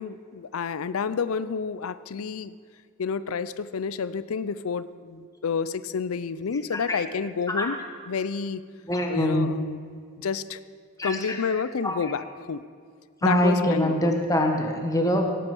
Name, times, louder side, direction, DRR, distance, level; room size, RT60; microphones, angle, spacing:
voice 1, 0.0-2.6 3.0-7.8 8.1-8.6 9.1-9.8 10.2-10.6 11.0-12.6 13.2-14.2, left 5 dB, 80° left, 15 dB, 0.5 m, -29 dB
voice 2, 8.9-9.5 11.0-11.4 11.8-12.0 13.2-15.2, equal, 15° left, 2 dB, 1.3 m, -24 dB
17.5 x 8.6 x 5.4 m, 2.1 s
head